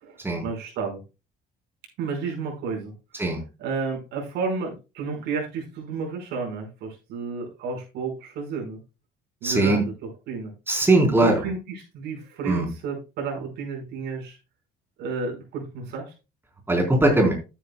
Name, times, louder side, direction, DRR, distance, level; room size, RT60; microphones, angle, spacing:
voice 1, 0.0-1.0 2.0-2.9 3.6-8.8 9.4-10.5 11.2-14.4 15.0-16.1, right 5 dB, 80° right, 2 dB, 5.1 m, -31 dB
voice 2, 9.4-9.8 10.7-11.4 12.5-12.7 16.7-17.3, right 2 dB, 15° right, 2 dB, 4.0 m, -20 dB
12.0 x 9.8 x 2.3 m, 0.28 s
cardioid pair, 110°, 17 cm